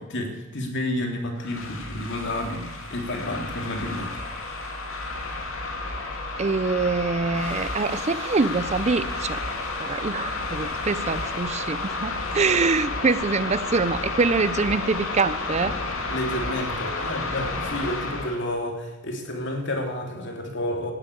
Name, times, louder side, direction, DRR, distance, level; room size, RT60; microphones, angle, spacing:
voice 1, 0.0-4.2 16.1-20.9, left 1 dB, 60° left, 3 dB, 2.9 m, -30 dB
sound 1, 1.4-18.4, left 3 dB, 80° left, 2.4 m, -31 dB
sound 2, 1.8-9.2, right 2 dB, 60° right, 1.6 m, -45 dB
voice 2, 6.4-9.4 9.8-15.7, right 4 dB, 35° right, 15 dB, 0.5 m, -24 dB
17.0 x 8.1 x 8.5 m, 1.2 s
head